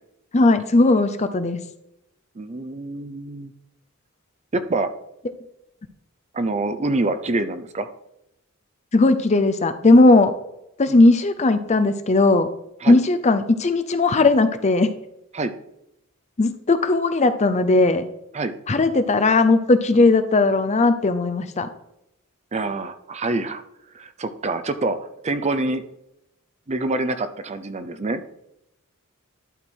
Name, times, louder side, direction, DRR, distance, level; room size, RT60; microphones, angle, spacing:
voice 1, 0.3-1.6 8.9-10.3 10.8-12.5 12.9-14.9 16.4-18.0 18.7-21.7, left 2 dB, 30° left, 10 dB, 0.6 m, -17 dB
voice 2, 2.4-3.5 4.5-4.9 6.3-7.9 10.9-11.0 12.8-13.0 15.3-15.5 18.3-18.5 22.5-23.6 23.9-25.0 25.2-25.8 26.7-28.2, right 2 dB, 30° right, 10 dB, 0.5 m, -26 dB
11.5 x 4.4 x 4.5 m, 0.83 s
head